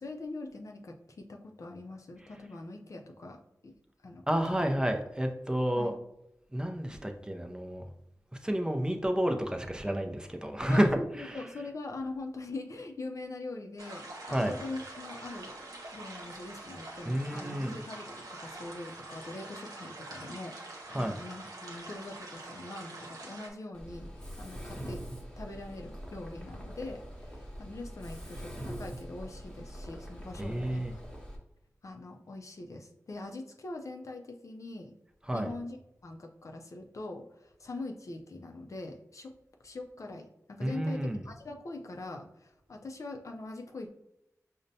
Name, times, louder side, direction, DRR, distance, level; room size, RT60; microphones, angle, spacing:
voice 1, 0.0-3.7 4.0-4.3 4.6-4.7 5.8-6.0 10.7-25.0 25.4-31.0 31.8-34.9 35.3-35.8 36.0-39.3 39.6-43.9, left 2 dB, 60° left, 3 dB, 0.5 m, -43 dB
voice 2, 4.3-5.9 6.5-7.9 8.4-11.7 14.3-14.6 17.0-17.8 20.9-21.2 30.4-31.0 35.2-35.5 40.6-41.3, equal, 15° right, 4 dB, 0.5 m, -30 dB
sound 1, 13.8-23.5, right 2 dB, 85° right, 0.7 m, -45 dB
Mechanisms, 23.7-31.4, equal, 10° left, 1.0 m, -43 dB
5.1 x 2.1 x 2.7 m, 0.83 s
wide cardioid pair, 65°, 6 cm